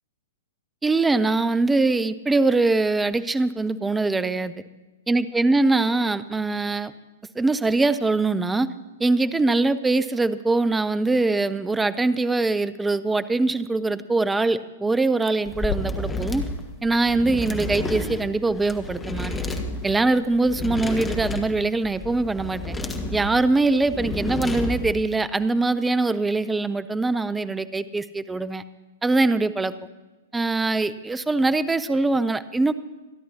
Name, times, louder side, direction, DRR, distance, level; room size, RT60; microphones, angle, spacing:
voice 1, 0.8-4.6 5.1-6.9 7.4-8.7 9.0-16.4 16.8-19.3 19.8-22.8 23.1-28.6 29.0-29.7 30.3-32.7, right 3 dB, 10° right, 14 dB, 0.6 m, -22 dB
sound 1, 15.4-25.1, left 2 dB, 10° left, 1.3 m, -31 dB
27.0 x 11.0 x 2.9 m, 1.2 s
figure-of-eight pair, 110°, 0 cm